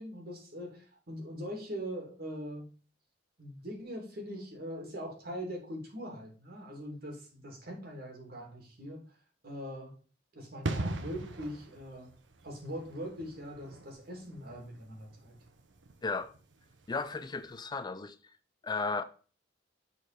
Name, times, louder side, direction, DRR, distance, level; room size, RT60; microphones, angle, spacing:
voice 1, 0.0-2.8 3.4-9.1 9.4-10.0 10.3-12.2 12.4-15.4, equal, 60° right, 2.5 m, -42 dB
sound 1, 10.6-17.1 17.4-17.6, right 2 dB, 85° right, 0.9 m, -41 dB
voice 2, 16.0-16.3 16.9-18.2 18.6-19.0, left 4 dB, 25° left, 0.4 m, -34 dB
6.6 x 4.3 x 4.9 m
head